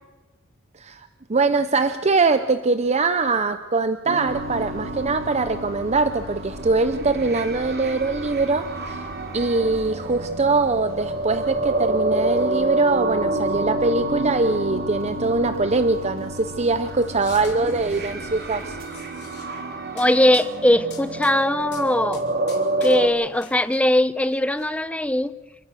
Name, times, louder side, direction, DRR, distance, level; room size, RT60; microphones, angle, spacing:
voice 1, 0.7-9.0 9.3-18.8, right 3 dB, 35° right, 10 dB, 0.8 m, -22 dB
sound 1, 4.1-23.1, right 2 dB, 55° right, 2.6 m, -29 dB
sound 2, 4.2-18.9, left 1 dB, 70° right, 3.6 m, -41 dB
sound 3, 17.0-18.5 18.8-19.5 20.0-20.1 20.3-20.5 20.9-21.3 21.6-21.9 22.1-22.2 22.5-23.9 24.3-24.7, left 8 dB, 55° left, 4.1 m, -45 dB
voice 2, 20.0-22.2 22.8-25.3, left 1 dB, 5° left, 14 dB, 0.8 m, -20 dB
29.5 x 14.5 x 6.4 m, 1.1 s
head